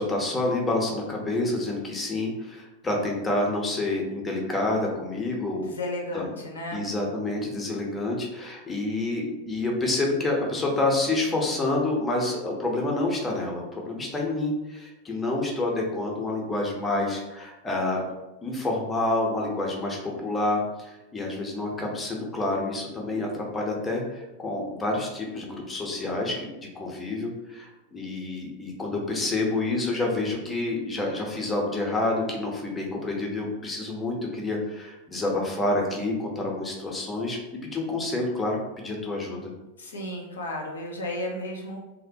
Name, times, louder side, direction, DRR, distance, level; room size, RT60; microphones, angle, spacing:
voice 1, 0.0-5.7 6.1-6.3 6.7-18.0 18.4-39.5, left 2 dB, 15° left, -1 dB, 0.5 m, -28 dB
voice 2, 5.6-6.8 39.8-41.8, left 1 dB, 70° left, 0 dB, 0.4 m, -33 dB
2.6 x 2.1 x 2.5 m, 1.0 s
figure-of-eight pair, 90°, 0 cm